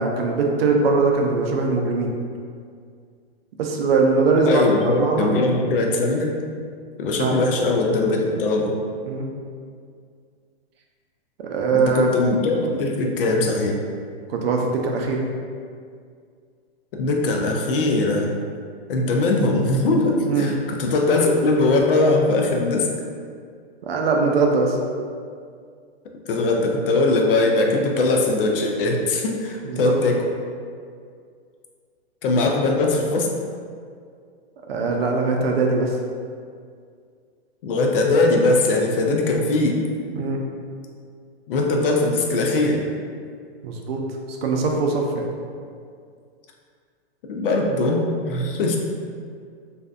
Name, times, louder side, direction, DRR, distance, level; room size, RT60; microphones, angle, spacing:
voice 1, 0.0-2.1 3.6-5.3 7.2-7.4 9.0-9.3 11.4-12.2 14.3-15.2 20.3-20.5 23.8-24.8 29.6-29.9 34.7-36.0 40.1-40.4 43.6-44.0 44.3-45.3, right 3 dB, 70° right, 1 dB, 0.5 m, -21 dB
voice 2, 4.5-6.4 7.0-8.7 11.7-13.8 16.9-18.3 18.9-22.9 26.3-30.2 32.2-33.3 37.6-39.8 41.5-42.8 47.3-48.8, left 2 dB, 60° left, 1 dB, 0.5 m, -20 dB
2.6 x 2.1 x 2.3 m, 2.2 s
hypercardioid pair, 130°, 32 cm